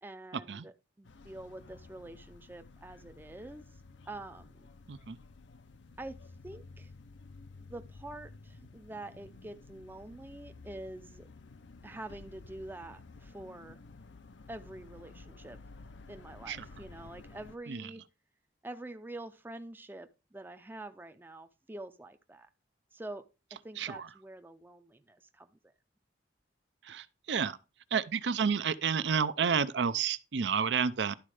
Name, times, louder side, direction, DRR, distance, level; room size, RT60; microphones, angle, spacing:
voice 1, 0.0-3.6 4.1-4.7 6.0-6.9 7.6-11.3 11.8-13.8 14.5-15.6 16.1-18.0 18.6-22.5 22.9-23.2 23.5-25.6, right 2 dB, 10° right, 0.5 m, -46 dB
sound 1, 1.0-17.6, left 3 dB, 85° left, 0.6 m, -53 dB
voice 2, 26.9-27.6 27.9-31.2, right 6 dB, 70° right, 0.5 m, -30 dB
11.5 x 4.3 x 4.9 m
head